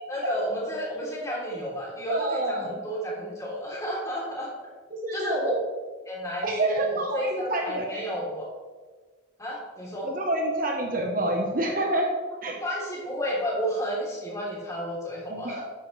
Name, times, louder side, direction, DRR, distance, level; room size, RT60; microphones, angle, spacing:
voice 1, 0.1-4.7 5.1-5.5 6.0-8.5 9.4-10.1 12.6-15.6, equal, 15° left, -5 dB, 3.4 m, -31 dB
voice 2, 2.1-2.8 4.9-5.5 6.4-8.1 10.0-12.6 15.3-15.6, right 1 dB, 45° right, 1 dB, 1.1 m, -28 dB
12.5 x 10.0 x 3.3 m, 1.4 s
head